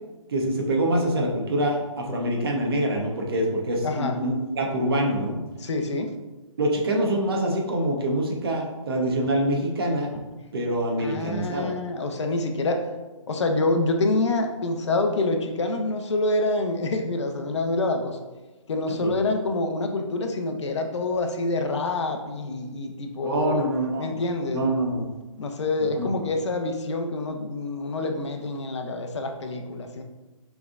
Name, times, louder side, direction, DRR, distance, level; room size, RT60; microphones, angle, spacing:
voice 1, 0.3-5.4 6.6-10.1 10.5-11.8 18.9-19.1 23.2-24.2 24.5-25.1 25.9-26.1, right 1 dB, 45° right, 0 dB, 0.9 m, -25 dB
voice 2, 3.8-4.2 5.6-6.1 11.0-12.9 13.3-18.2 18.7-23.6 24.0-24.6 25.4-30.0, left 2 dB, 55° left, 4 dB, 0.7 m, -26 dB
6.1 x 3.5 x 2.5 m, 1.2 s
hypercardioid pair, 170°, 17 cm